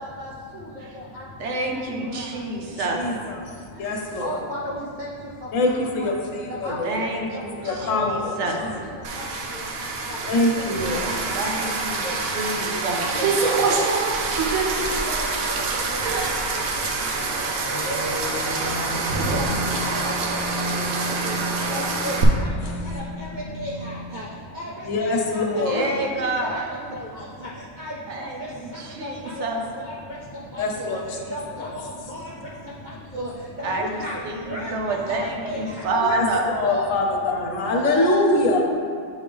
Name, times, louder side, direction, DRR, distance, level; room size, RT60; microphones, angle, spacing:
voice 1, 0.0-1.8 2.1-3.3 3.7-3.9 4.2-5.1 5.7-6.2 6.5-7.1 7.6-8.9 9.1-10.2 10.5-11.7 12.0-12.7 13.0-13.9 14.1-14.5 14.8-16.6 17.0-18.4 18.8-19.0 19.3-19.5 19.7-20.4 20.8-21.4 21.7-24.3 24.5-30.2 30.5-32.5 33.1-35.9 36.6-36.9 37.7-38.2, left 1 dB, 45° right, -6 dB, 0.6 m, -36 dB
voice 2, 1.4-3.0 6.8-8.6 11.3-13.1 25.7-26.7 28.1-29.6 33.6-36.4, right 2 dB, 60° right, 1 dB, 1.0 m, -28 dB
voice 3, 2.8-4.3 5.5-7.3 7.6-8.4 10.3-11.1 17.0-17.1 24.8-25.9 30.6-31.2 36.1-38.6, left 2 dB, 70° left, 1 dB, 1.1 m, -24 dB
sound 1, 9.0-22.2, right 4 dB, 85° right, 1.1 m, -26 dB
sound 2, 17.7-23.8, left 1 dB, 55° left, 0.6 m, -33 dB
8.4 x 3.5 x 3.4 m, 2.2 s
omnidirectional pair, 1.4 m